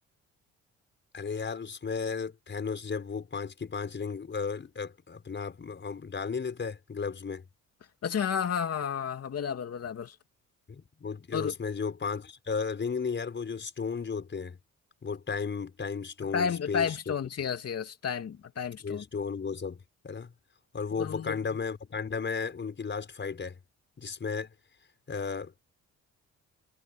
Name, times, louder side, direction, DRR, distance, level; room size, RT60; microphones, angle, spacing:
voice 1, 1.1-7.5 10.7-14.6 15.0-17.1 18.8-20.3 20.7-23.6 24.0-24.5 25.1-25.7, left 5 dB, 40° left, 5.8 m, -34 dB
voice 2, 8.0-10.1 11.3-11.5 16.3-19.0 21.0-21.4, left 7 dB, 55° left, 2.7 m, -31 dB
cardioid pair, 90°, 30 cm